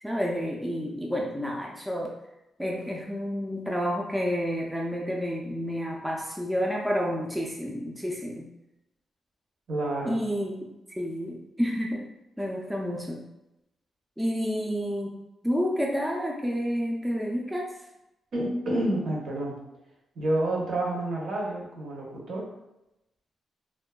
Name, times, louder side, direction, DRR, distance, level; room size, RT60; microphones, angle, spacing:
voice 1, 0.0-2.1 2.6-8.5 10.0-10.7 11.0-12.1 12.4-13.2 14.2-15.1 15.4-17.7, equal, 5° right, -2 dB, 0.3 m, -29 dB
voice 2, 9.7-10.2 18.3-19.6 20.2-22.5, right 1 dB, 60° right, -2 dB, 0.7 m, -29 dB
2.6 x 2.2 x 2.2 m, 0.91 s
cardioid pair, 130°, 0 cm